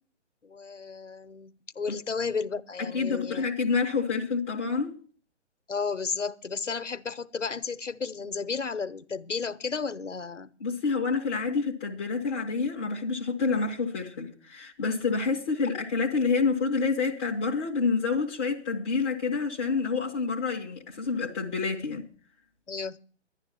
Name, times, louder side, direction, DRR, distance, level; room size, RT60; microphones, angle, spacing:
voice 1, 0.4-3.5 5.7-10.5 22.7-23.0, left 5 dB, 90° left, 1.0 m, -33 dB
voice 2, 2.8-5.0 10.6-22.1, left 4 dB, 5° left, 0.5 m, -28 dB
11.5 x 10.5 x 5.7 m
figure-of-eight pair, 145°, 35 cm